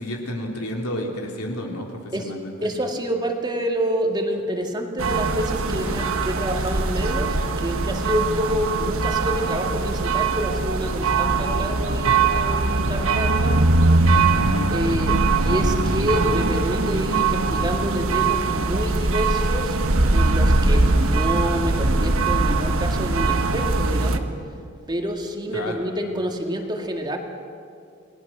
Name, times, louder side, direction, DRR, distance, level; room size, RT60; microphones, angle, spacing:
voice 1, 0.0-2.7 14.4-14.7 25.5-25.8, left 1 dB, 80° left, 0 dB, 3.7 m, -31 dB
voice 2, 2.6-13.6 14.7-19.8 20.1-24.3 24.9-27.2, equal, 20° right, 2 dB, 2.0 m, -27 dB
sound 1, 5.0-24.2, right 3 dB, 65° right, 1.4 m, -21 dB
29.5 x 20.0 x 6.2 m, 2.4 s
head